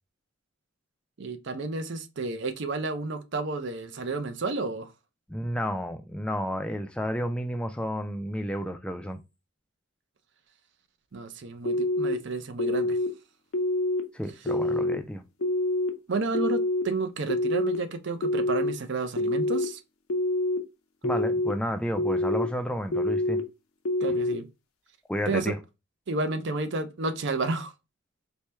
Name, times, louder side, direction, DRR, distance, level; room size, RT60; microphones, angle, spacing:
voice 1, 1.2-4.9 11.1-13.0 16.1-19.8 24.0-24.5 25.3-25.5 26.1-27.7, right 3 dB, 55° right, 0.5 m, -31 dB
voice 2, 5.3-9.2 14.1-15.2 21.0-23.4 25.1-25.6, equal, 5° left, 0.3 m, -31 dB
sound 1, 11.7-12.1 12.6-13.1 13.5-14.0 14.5-15.0 15.4-15.9 16.3-16.8 17.3-17.8 18.2-18.7 19.2-19.7 20.1-20.6 21.0-21.5 22.0-22.5 22.9-23.4 23.9-24.3, left 1 dB, 75° left, 0.6 m, -26 dB
4.4 x 2.2 x 3.3 m
head